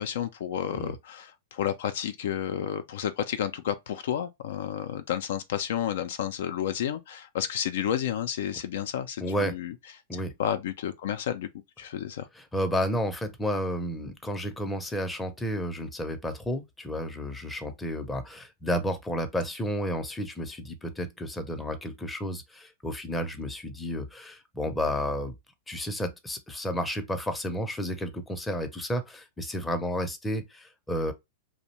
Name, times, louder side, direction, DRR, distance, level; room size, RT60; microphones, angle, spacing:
voice 1, 0.0-9.7 10.1-11.5 11.8-12.3, left 10 dB, 65° left, 0.3 m, -31 dB
voice 2, 9.2-9.6 10.1-10.3 12.4-25.3 25.7-31.1, equal, 10° left, 0.5 m, -31 dB
2.5 x 2.0 x 2.8 m
hypercardioid pair, 105°, 0 cm